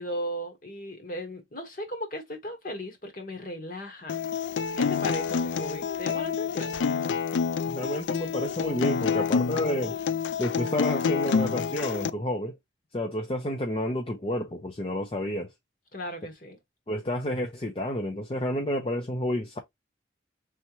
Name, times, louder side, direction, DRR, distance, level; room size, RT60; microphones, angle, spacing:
voice 1, 0.0-4.2 4.8-6.8 15.9-16.6, equal, 45° left, 1.5 m, -36 dB
Acoustic guitar, 4.1-12.1, left 6 dB, 75° left, 0.4 m, -28 dB
voice 2, 7.7-10.0 10.4-12.5 12.9-15.5 16.9-19.6, left 1 dB, 30° left, 0.6 m, -30 dB
4.2 x 3.5 x 3.0 m
head